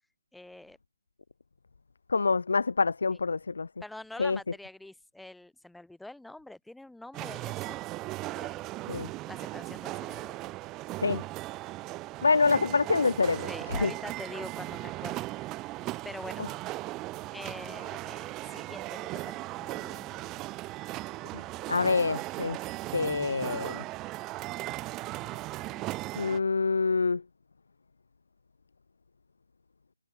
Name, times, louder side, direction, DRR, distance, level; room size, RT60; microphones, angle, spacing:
voice 1, 0.3-0.8 3.8-7.8 8.3-8.6 9.3-10.5 13.5-15.3 16.0-16.4 17.3-20.3, left 1 dB, ahead, 4.2 m, -45 dB
voice 2, 2.1-3.7 4.2-4.4 8.9-9.1 11.0-11.2 12.2-13.5 13.8-13.9 21.3-21.4 21.7-22.6 22.9-23.8 26.2-27.2, left 4 dB, 75° left, 0.9 m, -26 dB
sound 1, 7.1-26.4, right 19 dB, 15° right, 2.5 m, -37 dB
hypercardioid pair, 155°, 0 cm